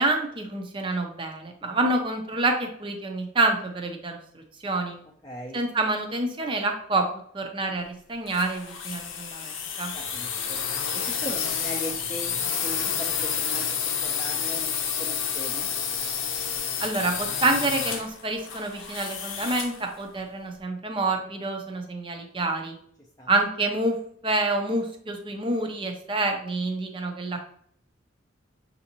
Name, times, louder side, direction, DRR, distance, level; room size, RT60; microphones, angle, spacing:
voice 1, 0.0-4.2 4.6-5.0 5.5-9.9 16.8-22.8 23.3-24.0 24.2-27.4, right 2 dB, 25° right, 3 dB, 0.6 m, -27 dB
voice 2, 5.2-5.6 9.9-10.6 10.9-15.7 23.2-23.3, left 1 dB, 15° left, -2 dB, 0.5 m, -39 dB
sound 1, 8.3-19.8, left 7 dB, 75° left, 0.7 m, -30 dB
6.9 x 2.7 x 2.9 m, 0.64 s
head